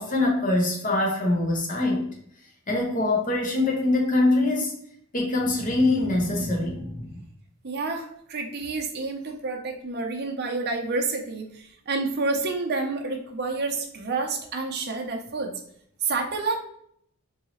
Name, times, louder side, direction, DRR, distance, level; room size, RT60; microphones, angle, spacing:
voice 1, 0.0-2.1 2.7-4.7 5.1-7.1, left 2 dB, 40° left, -1 dB, 0.9 m, -23 dB
voice 2, 7.6-15.6 16.0-16.6, right 3 dB, 50° right, 2 dB, 0.6 m, -29 dB
3.8 x 2.7 x 3.0 m, 0.69 s
head